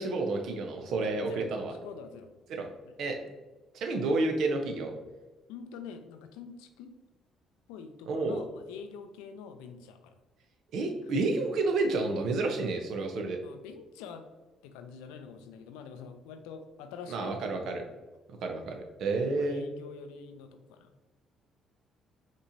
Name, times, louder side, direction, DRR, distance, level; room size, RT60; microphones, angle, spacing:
voice 1, 0.0-1.7 2.5-2.7 3.0-3.2 3.7-4.9 8.1-8.4 10.7-13.4 17.1-17.8 18.4-19.7, right 3 dB, 65° right, 4 dB, 0.7 m, -30 dB
voice 2, 1.0-1.4 1.7-2.3 2.8-2.9 5.5-6.9 7.7-10.1 13.0-14.3 14.6-17.7 19.2-20.9, left 6 dB, 80° left, 8 dB, 0.4 m, -46 dB
5.2 x 3.0 x 2.6 m, 1.2 s
hypercardioid pair, 55°, 0 cm